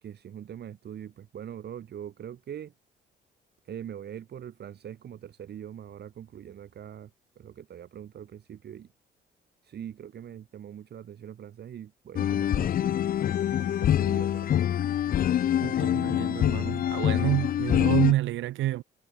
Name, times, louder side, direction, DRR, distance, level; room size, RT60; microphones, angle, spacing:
voice 1, 0.0-2.7 3.6-8.9 9.6-13.1 13.6-14.7, right 9 dB, 55° right, 1.3 m, -42 dB
sound 1, 12.2-18.1, left 10 dB, 45° left, 0.4 m, -25 dB
voice 2, 15.6-18.8, right 15 dB, 75° right, 0.7 m, -28 dB
cardioid pair, 90°, 20 cm